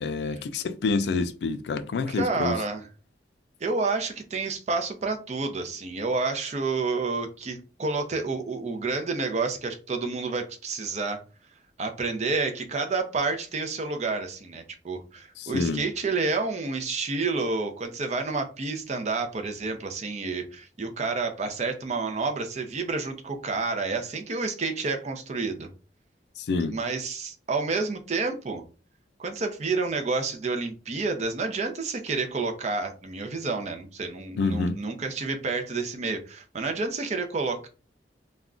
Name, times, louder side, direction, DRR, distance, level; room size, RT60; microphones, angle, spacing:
voice 1, 0.0-2.6 15.4-15.8 26.4-26.8 34.3-34.8, left 4 dB, 70° left, 0.3 m, -27 dB
voice 2, 2.1-2.8 3.6-11.2 11.8-25.7 26.6-28.6 29.2-37.7, right 3 dB, 40° right, 0.5 m, -29 dB
2.3 x 2.1 x 3.6 m
head